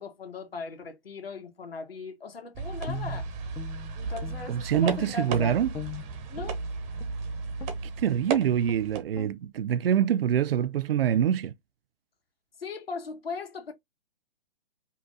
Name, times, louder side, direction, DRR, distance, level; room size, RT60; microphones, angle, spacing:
voice 1, 0.0-3.3 4.0-5.6 6.3-6.6 12.6-13.7, left 4 dB, 85° left, 1.9 m, -38 dB
sound 1, 2.5-9.0, right 4 dB, 25° right, 1.1 m, -35 dB
Guitar, 2.8-4.6 4.8-6.6 7.0-7.2 7.6-7.9 8.2-8.4 8.6-8.9 9.1-9.3, left 7 dB, 10° left, 0.3 m, -40 dB
voice 2, 4.5-5.7 8.0-11.5, right 9 dB, 80° right, 0.5 m, -25 dB
5.5 x 2.3 x 4.0 m
hypercardioid pair, 135°, 29 cm